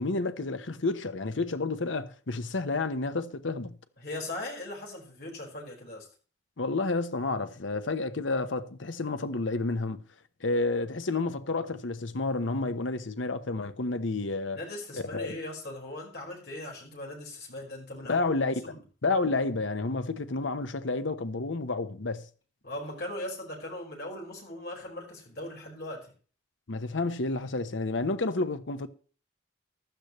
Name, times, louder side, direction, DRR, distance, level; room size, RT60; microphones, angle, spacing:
voice 1, 0.0-3.8 6.6-10.0 10.4-14.6 15.0-15.3 18.1-18.5 19.0-22.2 26.7-28.9, left 3 dB, 85° left, 0.9 m, -30 dB
voice 2, 4.0-6.1 14.5-18.8 22.6-26.1, left 1 dB, 55° left, 4.8 m, -39 dB
15.0 x 12.0 x 3.1 m
head